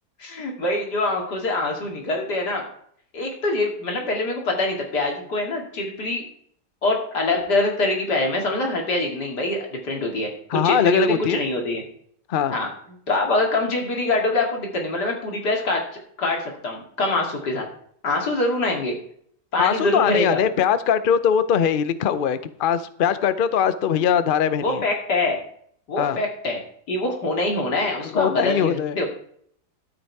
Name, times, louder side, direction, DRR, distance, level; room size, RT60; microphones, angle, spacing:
voice 1, 0.2-2.7 3.1-6.2 6.8-10.3 10.6-11.8 12.5-12.7 13.1-15.8 16.2-17.7 18.0-19.0 19.5-20.4 24.6-25.4 25.9-26.6 26.9-29.1, left 2 dB, 75° left, 0 dB, 3.1 m, -24 dB
voice 2, 10.5-11.4 12.3-12.5 19.6-24.8 26.0-26.2 28.1-29.0, left 8 dB, 60° left, 13 dB, 0.5 m, -21 dB
12.5 x 8.0 x 4.7 m, 0.63 s
omnidirectional pair, 1.8 m